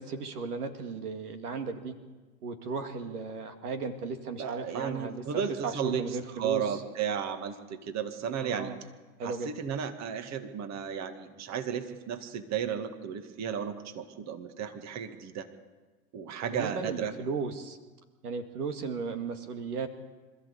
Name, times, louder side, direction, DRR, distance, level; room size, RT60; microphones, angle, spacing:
voice 1, 0.0-1.9 2.4-6.8 8.4-8.8 9.2-9.5 16.4-17.8 18.2-19.9, right 4 dB, 75° right, 7 dB, 2.3 m, -35 dB
voice 2, 4.4-8.7 9.2-15.5 16.1-17.1, right 8 dB, 35° right, 8 dB, 2.2 m, -34 dB
26.0 x 14.5 x 8.5 m, 1.3 s
hypercardioid pair, 95°, 46 cm